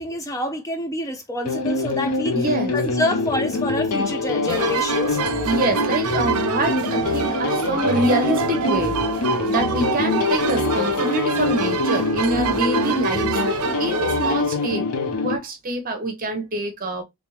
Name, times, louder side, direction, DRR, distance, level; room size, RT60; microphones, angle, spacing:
voice 1, 0.0-2.4 2.7-5.2, left 1 dB, 15° left, 0.5 m, -27 dB
sound 1, 1.4-15.4, left 3 dB, 80° left, 0.7 m, -24 dB
voice 2, 1.8-2.8 5.1-13.4 13.8-14.9 15.2-17.0, right 1 dB, 40° right, 1.0 m, -26 dB
sound 2, 4.5-14.4, right 6 dB, 80° right, 0.5 m, -26 dB
3.5 x 3.2 x 2.9 m
head